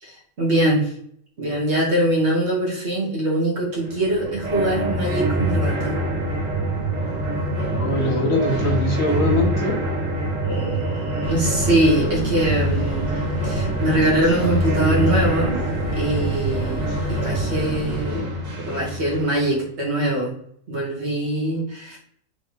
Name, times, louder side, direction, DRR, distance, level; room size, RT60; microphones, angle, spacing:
voice 1, 0.0-0.9 1.4-5.9 10.5-13.1 13.4-15.6 16.0-18.2 18.7-20.3 20.7-22.0, right 1 dB, 45° right, -3 dB, 1.6 m, -23 dB
sound 1, 3.8-19.6, right 1 dB, 80° right, 1.7 m, -25 dB
voice 2, 7.7-9.9 17.9-18.3, left 2 dB, 65° left, 1 dB, 1.1 m, -23 dB
sound 2, 11.2-18.0, left 2 dB, 85° left, 0.4 m, -33 dB
4.1 x 3.2 x 3.2 m, 0.66 s
omnidirectional pair, 1.7 m